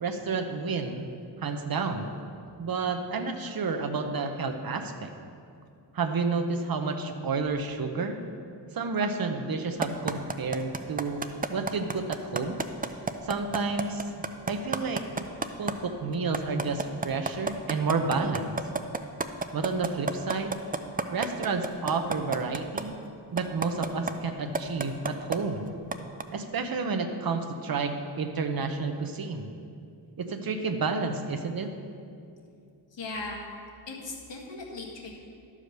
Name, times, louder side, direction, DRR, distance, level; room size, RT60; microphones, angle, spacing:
voice 1, 0.0-1.1 1.4-2.1 2.6-5.1 5.9-8.2 8.7-11.2 11.5-12.6 13.2-14.0 14.5-15.0 15.6-18.5 19.5-20.6 21.1-22.9 23.3-25.7 26.3-29.6 30.2-31.7, right 4 dB, 50° right, 5 dB, 0.9 m, -30 dB
sound 1, 9.8-15.7 16.1-22.8 23.4-24.1 24.6-25.4 25.9-26.2, right 4 dB, 20° right, 0.5 m, -29 dB
voice 2, 32.9-33.4 33.9-35.1, left 3 dB, 70° left, -2 dB, 1.9 m, -38 dB
12.5 x 5.0 x 6.6 m, 2.4 s
wide cardioid pair, 85°, 44 cm